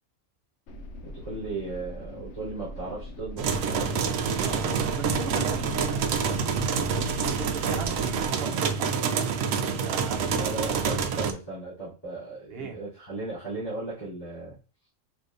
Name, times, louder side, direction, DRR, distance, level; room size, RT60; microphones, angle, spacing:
sound 1, 0.7-8.3, equal, 65° left, 0.8 m, -41 dB
voice 1, 1.0-4.0 10.3-14.5, right 3 dB, 35° left, 2.8 m, -36 dB
sound 2, 3.4-11.3, right 6 dB, 90° right, 1.0 m, -27 dB
voice 2, 4.3-6.9 7.3-9.3 9.6-10.5 12.5-12.8, right 4 dB, 55° right, 0.9 m, -39 dB
6.3 x 2.8 x 2.6 m
omnidirectional pair, 1.3 m